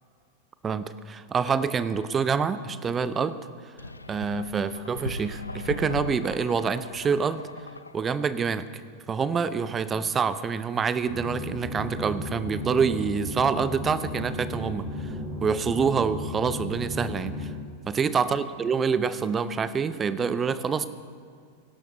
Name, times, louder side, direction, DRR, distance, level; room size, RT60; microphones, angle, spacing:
voice 1, 0.6-3.4 4.1-7.5 7.9-8.7 9.1-15.1 15.4-17.5 17.9-20.9, right 6 dB, 20° right, 14 dB, 0.6 m, -26 dB
sound 1, 3.8-8.3, left 2 dB, 80° left, 0.5 m, -38 dB
sound 2, 11.1-17.5, left 2 dB, 50° right, 4.3 m, -34 dB
24.0 x 11.5 x 3.1 m, 2.2 s
figure-of-eight pair, 90°, 0 cm